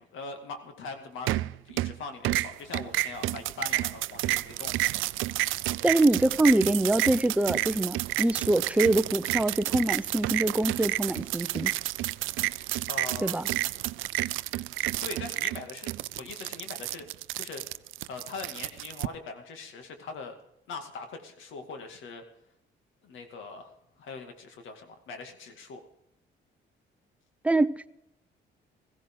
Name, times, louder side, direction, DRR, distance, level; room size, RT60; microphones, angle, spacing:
voice 1, 0.0-4.8 12.9-13.4 15.0-17.1 17.3-17.6 18.1-20.4 20.7-22.2 23.0-25.8, left 4 dB, 80° left, 2.3 m, -41 dB
sound 1, 1.3-2.0 2.2-19.1, right 16 dB, 85° right, 0.4 m, -30 dB
voice 2, 5.8-11.7 13.2-13.5 27.4-27.9, right 1 dB, 5° right, 0.6 m, -24 dB
16.5 x 15.5 x 3.8 m
cardioid pair, 90°, 20 cm